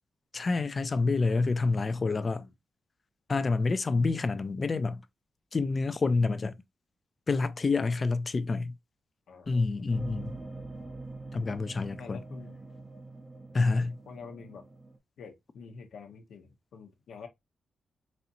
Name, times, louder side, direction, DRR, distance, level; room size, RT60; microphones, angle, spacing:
voice 1, 0.3-2.4 3.3-5.0 5.5-6.5 7.3-8.7 9.5-10.3 11.3-12.2 13.5-13.9, left 3 dB, 35° left, 0.4 m, -28 dB
voice 2, 2.2-2.5 9.3-10.4 12.0-12.6 13.5-14.6 15.2-17.3, left 5 dB, 85° left, 0.9 m, -48 dB
sound 1, 9.9-15.0, right 2 dB, 20° right, 0.6 m, -44 dB
4.2 x 2.8 x 2.6 m
cardioid pair, 110°, 0 cm